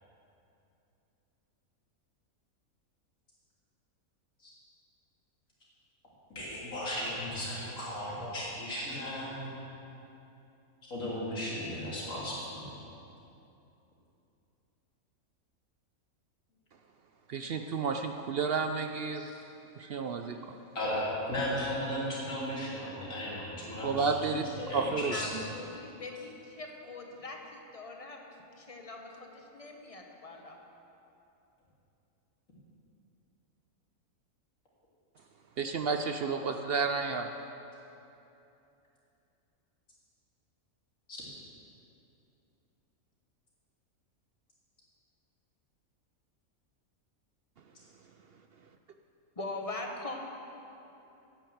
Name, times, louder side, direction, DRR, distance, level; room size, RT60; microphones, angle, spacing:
voice 1, 6.3-9.5 10.9-12.7 20.8-25.3 41.1-41.2, left 1 dB, 65° left, -7 dB, 3.5 m, -35 dB
voice 2, 17.3-19.3 19.8-20.4 23.8-24.4 24.7-25.4 35.6-37.3, right 5 dB, 65° right, 5 dB, 0.6 m, -31 dB
voice 3, 25.1-28.2 28.6-30.6 49.4-50.2, left 2 dB, 25° left, 1 dB, 1.1 m, -42 dB
10.0 x 9.2 x 7.8 m, 2.9 s
omnidirectional pair, 1.5 m